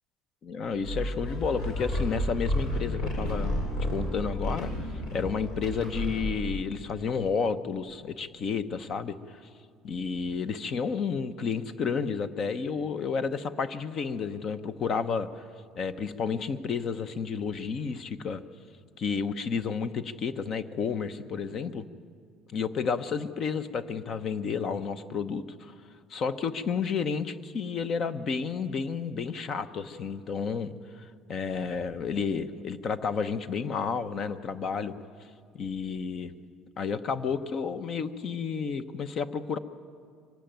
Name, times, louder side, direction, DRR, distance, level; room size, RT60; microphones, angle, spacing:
voice 1, 0.5-3.5 3.9-4.7 5.1-9.4 9.8-15.4 15.8-18.4 19.0-21.9 22.5-25.7 26.1-34.9 35.5-36.3 36.8-39.6, left 5 dB, 40° left, 12 dB, 0.8 m, -31 dB
sound 1, 0.8-6.6, left 1 dB, 75° left, 6.2 m, -31 dB
24.0 x 15.5 x 9.2 m, 2.2 s
cardioid pair, 155°, 0 cm